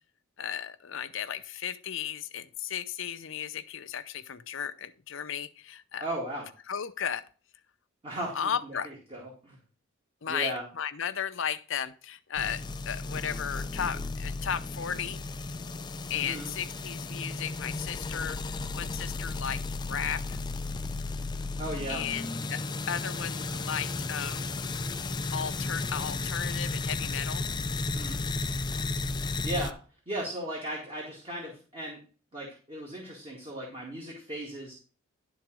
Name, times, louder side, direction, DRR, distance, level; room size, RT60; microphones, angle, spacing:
voice 1, 0.4-6.0 6.7-7.2 8.3-8.9 10.2-15.2 16.1-19.6 19.9-20.4 21.9-24.5 25.3-27.4, left 8 dB, 65° left, 12 dB, 0.6 m, -35 dB
voice 2, 6.0-6.5 8.0-9.6 10.3-10.6 16.1-16.5 21.6-22.0 27.9-28.2 29.4-32.0 32.3-34.7, right 1 dB, 30° right, -2 dB, 2.0 m, -37 dB
sound 1, 12.4-29.7, left 3 dB, 20° left, 0.4 m, -34 dB
11.5 x 3.9 x 6.1 m, 0.37 s
head